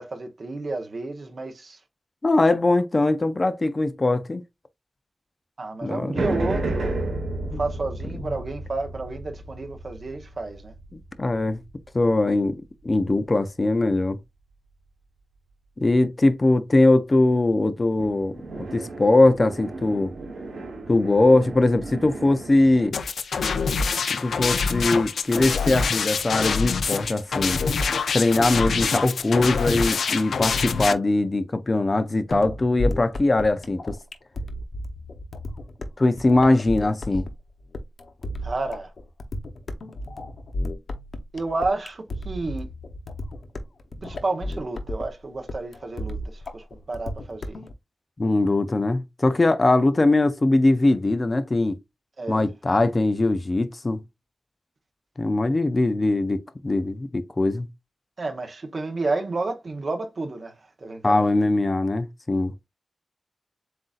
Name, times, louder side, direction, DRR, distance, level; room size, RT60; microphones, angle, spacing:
voice 1, 0.0-1.8 5.6-7.0 7.4-10.7 38.4-38.9 41.3-42.7 44.0-47.6 52.2-52.5 58.2-61.3, right 3 dB, 40° right, 0.9 m, -31 dB
voice 2, 2.2-4.4 5.8-6.2 7.5-7.6 11.2-11.6 11.9-12.6 12.8-14.2 15.8-18.4 18.7-20.1 20.9-22.9 24.1-27.6 28.1-34.0 36.0-37.2 48.2-51.8 52.3-54.0 55.2-56.4 56.6-57.7 61.0-62.5, left 2 dB, 25° left, 0.4 m, -21 dB
sound 1, 6.1-12.7 18.0-22.9, right 2 dB, 80° right, 1.1 m, -33 dB
sound 2, 22.9-30.9, left 5 dB, 85° left, 0.5 m, -25 dB
sound 3, 32.3-47.7, left 1 dB, 55° left, 0.9 m, -33 dB
7.6 x 2.6 x 2.4 m
wide cardioid pair, 170°, 0 cm